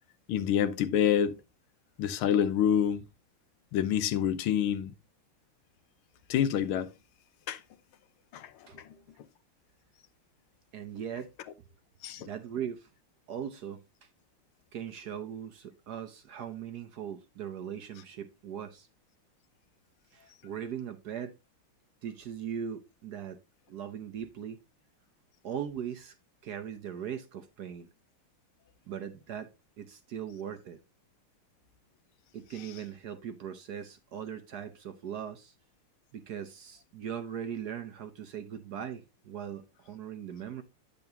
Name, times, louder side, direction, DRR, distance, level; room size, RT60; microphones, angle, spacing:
voice 1, 0.3-1.4 2.0-3.0 3.7-4.9 6.3-6.9 7.5-7.6 8.3-8.5 12.0-12.3, left 9 dB, 90° left, 1.6 m, -27 dB
voice 2, 10.7-11.3 12.2-12.9 13.3-13.8 14.7-18.9 20.1-21.4 22.0-23.4 23.7-24.6 25.4-26.1 26.4-27.9 28.9-29.5 29.8-30.8 32.3-35.5 36.1-40.6, right 8 dB, 60° right, 1.2 m, -39 dB
9.2 x 7.0 x 2.7 m
omnidirectional pair, 2.3 m